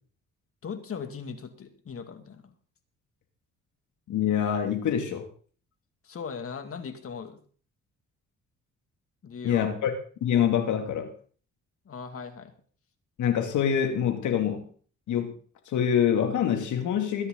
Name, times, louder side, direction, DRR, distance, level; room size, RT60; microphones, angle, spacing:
voice 1, 0.6-2.5 6.0-7.4 9.2-9.7 11.9-12.5, left 6 dB, 50° left, 8 dB, 2.4 m, -38 dB
voice 2, 4.1-5.2 9.4-9.9 10.2-11.1 13.2-14.7 15.1-15.3 15.7-17.3, left 9 dB, 75° left, 5 dB, 2.7 m, -25 dB
22.5 x 9.9 x 3.9 m, 0.43 s
cardioid pair, 90°, 30 cm